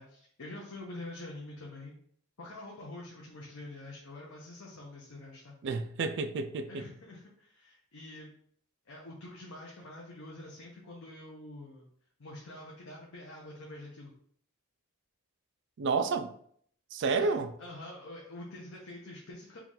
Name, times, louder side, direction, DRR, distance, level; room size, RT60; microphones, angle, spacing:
voice 1, 0.0-2.0 2.4-5.5 6.7-8.3 8.9-11.9 12.2-14.1 17.2-19.6, left 1 dB, 65° left, 0.8 m, -46 dB
voice 2, 5.6-6.9 15.8-16.3 16.9-17.5, right 4 dB, 55° right, 0.4 m, -30 dB
4.5 x 2.4 x 3.8 m
head